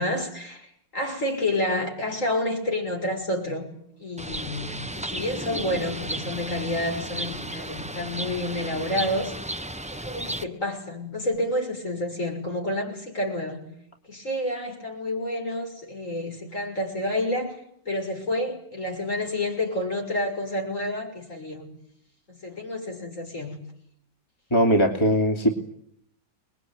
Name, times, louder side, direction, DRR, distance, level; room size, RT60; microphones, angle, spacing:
voice 1, 0.0-3.7 4.0-9.3 9.9-13.6 14.1-17.6 17.8-21.7 22.3-23.6, left 1 dB, 45° left, 3 dB, 6.7 m, -29 dB
Bird, 4.2-10.4, right 1 dB, 5° right, 0.6 m, -34 dB
voice 2, 24.5-25.5, equal, 15° left, 2 dB, 2.8 m, -20 dB
28.5 x 21.5 x 9.5 m, 0.70 s
omnidirectional pair, 1.9 m